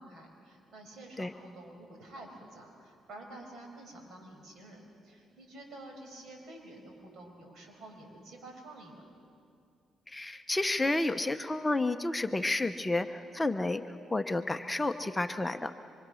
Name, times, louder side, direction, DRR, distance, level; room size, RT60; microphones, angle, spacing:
voice 1, 0.0-9.0, right 1 dB, 65° right, 2 dB, 5.5 m, -49 dB
voice 2, 10.1-15.7, left 2 dB, 15° left, 8 dB, 0.8 m, -31 dB
25.5 x 24.5 x 6.4 m, 2.4 s
cardioid pair, 90°, 0 cm